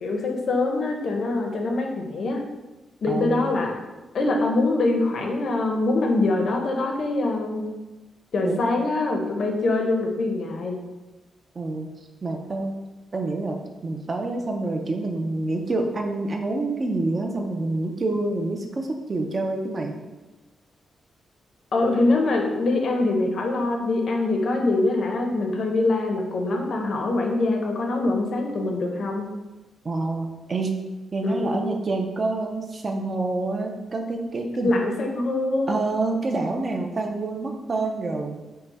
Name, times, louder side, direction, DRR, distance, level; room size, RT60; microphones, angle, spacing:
voice 1, 0.0-2.4 3.0-3.8 4.1-7.6 8.3-10.8 21.7-29.3 31.2-31.6 34.6-35.7, left 2 dB, 50° left, 2 dB, 0.6 m, -24 dB
voice 2, 3.1-3.5 8.4-8.6 11.6-11.9 12.2-12.7 13.1-13.6 13.8-20.0 29.8-30.7 31.1-34.7 35.7-38.4, right 2 dB, 30° right, 3 dB, 0.4 m, -27 dB
5.6 x 2.1 x 4.0 m, 1.1 s
wide cardioid pair, 170°, 0 cm